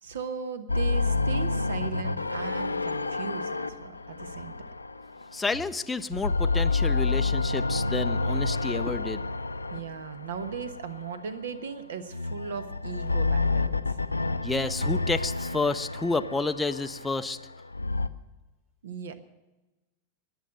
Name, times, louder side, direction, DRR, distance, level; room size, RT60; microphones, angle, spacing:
voice 1, 0.0-4.6 9.7-14.0 18.8-19.1, right 6 dB, 60° right, 12 dB, 1.2 m, -37 dB
sound 1, 0.7-5.6 6.0-11.3 12.1-18.1, left 3 dB, 80° left, 0.5 m, -29 dB
voice 2, 5.3-9.2 14.4-17.4, left 3 dB, 10° left, 8 dB, 0.5 m, -30 dB
21.0 x 8.2 x 6.7 m, 1.1 s
figure-of-eight pair, 90°, 0 cm